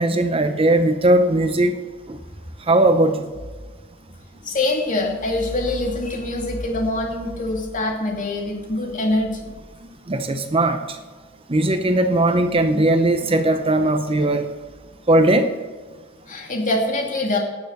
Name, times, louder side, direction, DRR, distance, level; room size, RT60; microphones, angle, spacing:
voice 1, 0.0-1.7 2.1-2.2 2.7-3.3 10.1-10.8 11.5-14.5 15.1-15.5, right 1 dB, 25° right, 8 dB, 0.7 m, -18 dB
voice 2, 4.4-9.5 16.3-17.4, left 2 dB, 40° left, 0 dB, 2.4 m, -24 dB
18.0 x 7.0 x 6.6 m, 1.4 s
head